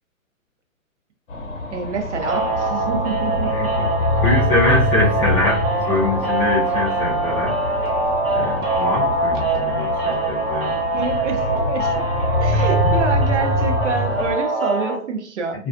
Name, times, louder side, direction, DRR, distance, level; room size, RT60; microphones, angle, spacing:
sound 1, 1.3-14.3, left 1 dB, 65° left, 1.0 m, -25 dB
voice 1, 1.7-3.7 10.9-12.1 12.4-15.7, right 4 dB, 60° right, 5 dB, 0.7 m, -27 dB
sound 2, 2.2-15.0, right 2 dB, 40° right, 1.0 m, -23 dB
voice 2, 3.5-3.9 4.1-5.6 5.9-7.8 8.3-10.7 15.6-15.7, left 2 dB, 10° left, -8 dB, 0.6 m, -23 dB
2.4 x 2.2 x 2.5 m, 0.43 s
hypercardioid pair, 135°, 41 cm